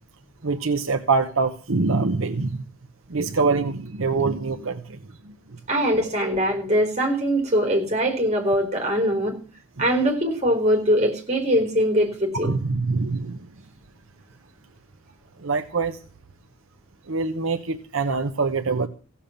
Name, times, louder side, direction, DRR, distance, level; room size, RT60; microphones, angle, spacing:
voice 1, 0.4-2.7 3.1-5.0 5.2-5.6 9.8-9.9 12.4-13.5 15.4-16.0 17.1-18.9, right 4 dB, 70° right, 6 dB, 0.9 m, -24 dB
voice 2, 5.7-9.4 9.8-12.5, equal, 30° right, 3 dB, 3.9 m, -22 dB
16.0 x 7.3 x 7.2 m, 0.38 s
head